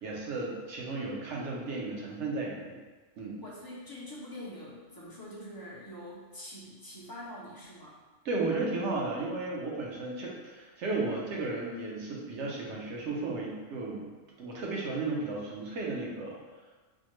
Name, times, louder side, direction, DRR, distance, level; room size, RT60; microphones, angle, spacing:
voice 1, 0.0-2.8 3.2-3.4 8.2-14.1 14.4-16.4, right 3 dB, 75° right, -2 dB, 1.0 m, -34 dB
voice 2, 3.4-8.0, left 1 dB, 30° left, -6 dB, 0.4 m, -44 dB
4.2 x 2.1 x 3.0 m, 1.3 s
omnidirectional pair, 1.2 m